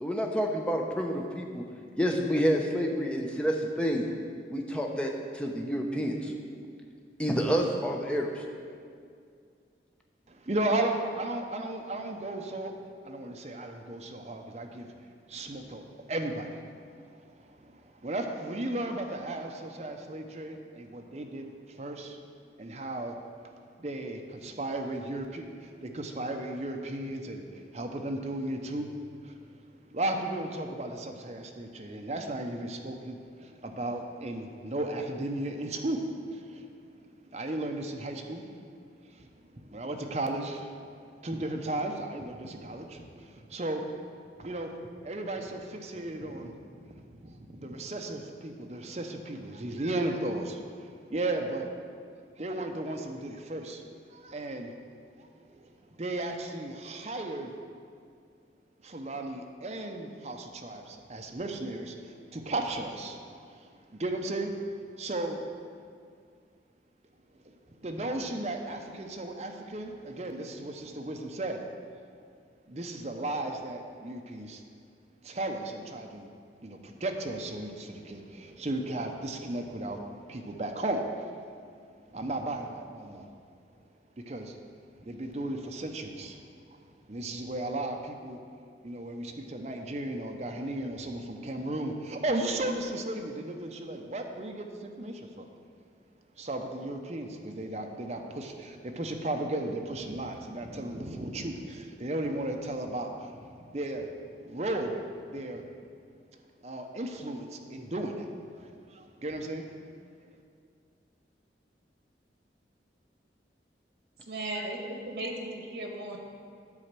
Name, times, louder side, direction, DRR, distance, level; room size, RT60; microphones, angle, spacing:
voice 1, 0.0-1.6 2.0-4.1 4.5-6.3 7.2-8.4, equal, 5° left, 0 dB, 0.6 m, -29 dB
voice 2, 10.3-12.7 13.0-14.9 15.3-22.2 22.6-23.2 23.8-29.5 29.8-38.6 39.0-43.8 44.4-44.7 45.0-51.7 52.4-54.7 55.2-57.5 58.8-64.5 65.0-65.4 67.4-71.6 72.7-74.6 75.2-76.3 76.6-81.3 82.1-83.3 84.3-84.6 85.0-86.4 86.7-86.8 87.1-88.4 88.8-95.5 96.4-104.1 104.4-105.0 105.3-105.7 106.6-109.7, right 1 dB, 40° right, 3 dB, 0.7 m, -35 dB
voice 3, 114.3-116.2, right 1 dB, 70° right, 2 dB, 1.3 m, -36 dB
9.7 x 4.3 x 7.5 m, 2.2 s
head